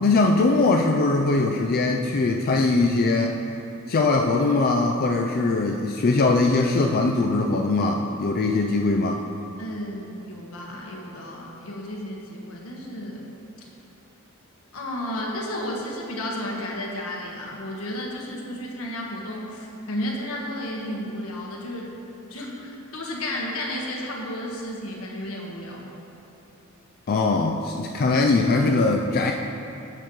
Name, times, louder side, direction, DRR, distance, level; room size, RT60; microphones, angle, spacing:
voice 1, 0.0-3.4 3.9-9.3 27.1-29.3, left 3 dB, 45° left, 1 dB, 0.4 m, -21 dB
voice 2, 9.6-13.3 14.7-21.9 22.3-25.9, left 1 dB, 80° left, -2 dB, 1.4 m, -33 dB
11.0 x 7.8 x 3.1 m, 2.8 s
head